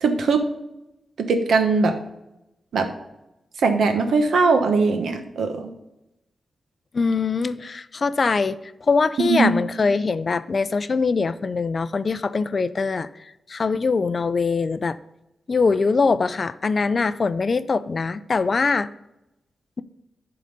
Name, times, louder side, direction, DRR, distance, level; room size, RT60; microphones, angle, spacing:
voice 1, 0.0-0.4 1.2-2.0 2.7-2.9 3.6-5.7 9.3-9.5, right 4 dB, 85° right, 6 dB, 1.1 m, -20 dB
voice 2, 6.9-8.6 8.9-13.1 13.5-15.0 15.5-18.9, left 4 dB, 40° left, 14 dB, 0.4 m, -22 dB
11.0 x 3.9 x 5.3 m, 0.90 s
wide cardioid pair, 135°, 0 cm